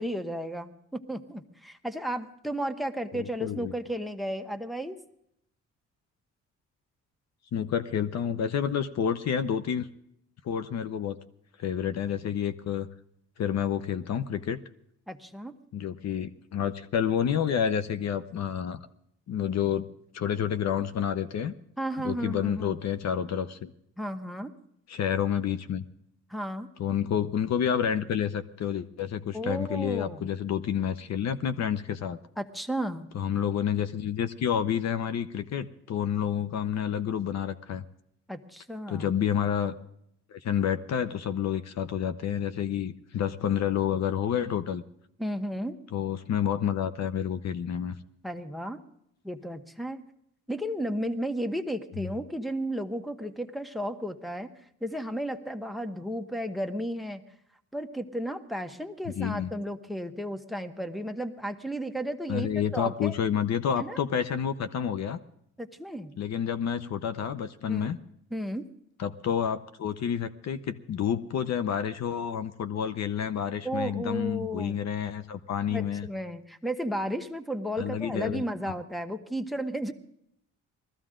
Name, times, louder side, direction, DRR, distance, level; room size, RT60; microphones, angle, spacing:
voice 1, 0.0-5.0 15.1-15.5 21.8-22.8 24.0-24.5 26.3-26.7 29.3-30.3 32.4-33.1 38.3-39.1 45.2-45.8 48.2-48.8 49.2-50.0 50.5-54.5 54.8-57.2 57.7-63.1 63.8-64.0 65.6-66.1 67.7-67.9 68.3-68.7 73.6-74.8 75.7-79.9, equal, ahead, 9 dB, 1.1 m, -33 dB
voice 2, 3.1-3.7 7.5-9.9 10.4-11.2 11.6-12.9 13.4-14.6 15.7-18.8 19.3-19.9 20.1-21.5 22.0-23.7 24.9-25.8 26.8-32.2 33.1-37.8 38.9-39.7 40.3-44.8 45.9-47.9 52.0-52.1 59.2-59.5 62.3-65.2 66.2-68.0 69.0-76.1 77.8-78.7, left 8 dB, 60° left, 11 dB, 0.8 m, -29 dB
20.0 x 14.5 x 3.8 m, 0.73 s
cardioid pair, 90°, 30 cm